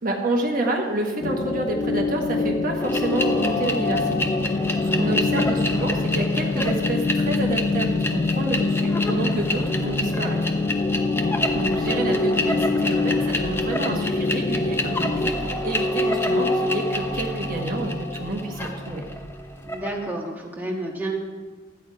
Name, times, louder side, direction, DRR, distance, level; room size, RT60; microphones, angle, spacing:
voice 1, 0.0-4.6 4.9-10.4 11.5-19.0, right 2 dB, 45° right, 1 dB, 1.3 m, -28 dB
sound 1, 1.2-15.3, left 4 dB, 35° left, 0.3 m, -25 dB
sound 2, 2.8-20.0, left 1 dB, 10° left, 0.8 m, -27 dB
voice 2, 4.9-5.2 10.9-11.4 19.6-21.2, right 2 dB, 10° right, -2 dB, 1.5 m, -31 dB
13.0 x 9.0 x 4.8 m, 1.4 s
head